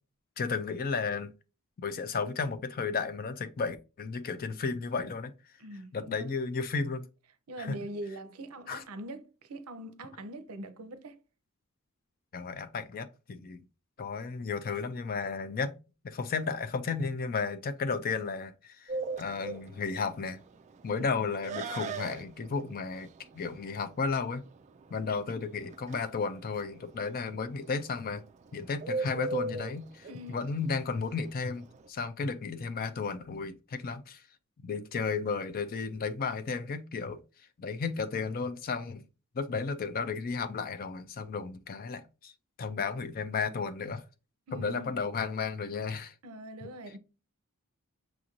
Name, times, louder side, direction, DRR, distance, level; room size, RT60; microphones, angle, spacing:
voice 1, 0.4-1.3 1.8-5.3 5.9-7.1 7.6-7.8 8.7-8.8 12.3-13.6 14.0-15.7 16.0-20.4 20.8-23.1 23.3-24.4 24.9-28.2 28.5-34.2 34.6-37.2 37.6-39.0 39.3-42.3 42.6-44.0 44.5-46.1, left 4 dB, 40° left, 0.4 m, -33 dB
voice 2, 5.6-6.3 7.5-11.2 20.9-21.0 30.1-30.5 44.5-45.0 46.2-47.0, right 1 dB, 75° right, 0.6 m, -43 dB
Bird, 18.9-31.9, right 3 dB, 30° right, 0.3 m, -39 dB
6.0 x 2.5 x 2.9 m
head